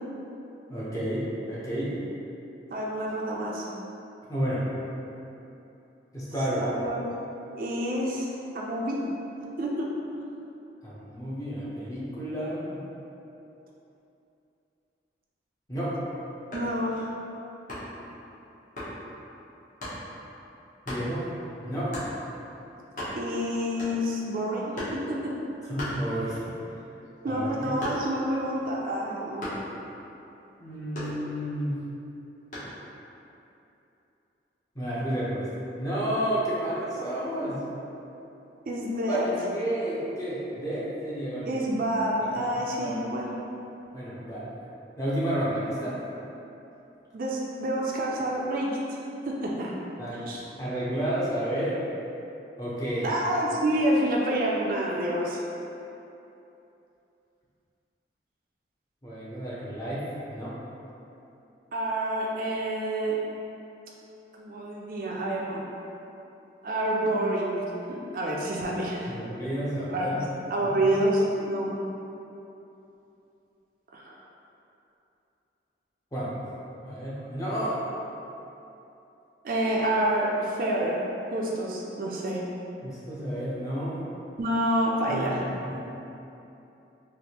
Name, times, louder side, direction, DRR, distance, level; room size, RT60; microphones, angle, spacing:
voice 1, 0.7-1.9 4.3-4.6 6.1-6.7 10.8-12.8 15.7-15.9 20.9-21.2 21.6-21.9 25.7-26.5 27.3-27.7 30.6-31.7 34.7-35.5 35.8-37.6 39.1-41.6 42.4-42.5 42.8-43.1 43.9-44.5 45.0-45.9 50.0-50.3 50.6-51.8 52.6-53.1 59.0-60.0 60.3-60.5 69.1-70.2 76.1-76.3 76.8-77.7 82.8-84.0 85.1-85.7, right 1 dB, 20° left, -9 dB, 0.6 m, -31 dB
voice 2, 2.7-3.7 6.6-7.0 7.6-8.3 8.5-9.0 9.6-9.9 16.5-17.1 23.1-25.4 27.2-29.5 38.7-39.3 41.4-43.3 47.1-49.7 50.1-50.4 53.0-55.4 61.7-63.2 64.4-65.6 66.6-67.6 67.9-69.1 69.9-70.2 70.5-71.7 73.9-74.1 79.4-81.0 81.3-82.4 84.4-85.4, right 1 dB, 50° right, -3 dB, 0.3 m, -28 dB
sound 1, 16.5-16.8 17.7-18.0 18.8-19.0 19.8-20.0 20.8-21.1 21.9-22.2 22.6-22.7 22.8-23.4 23.8-24.2 24.7-25.1 25.8-26.5 26.9-28.3 29.4-29.7 30.9-31.6 32.5-32.8, left 1 dB, 45° left, 0.9 m, -36 dB
3.2 x 2.4 x 2.8 m, 2.9 s
head